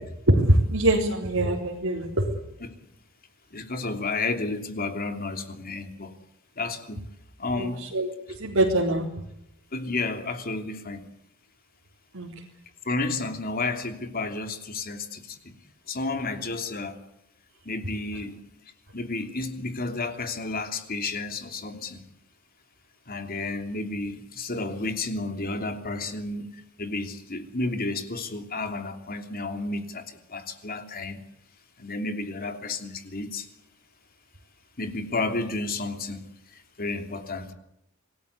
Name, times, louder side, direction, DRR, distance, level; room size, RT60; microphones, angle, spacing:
voice 1, 0.3-2.3 7.5-9.1 12.1-12.4, right 1 dB, 75° right, -3 dB, 4.0 m, -23 dB
voice 2, 3.5-6.1 6.6-7.0 7.4-7.8 9.7-11.1 12.8-15.4 15.9-17.0 17.6-18.4 18.9-22.0 23.1-31.2 31.8-33.5 34.8-36.2 36.5-37.5, left 3 dB, 45° left, 7 dB, 3.0 m, -31 dB
26.5 x 19.0 x 8.4 m, 0.79 s
head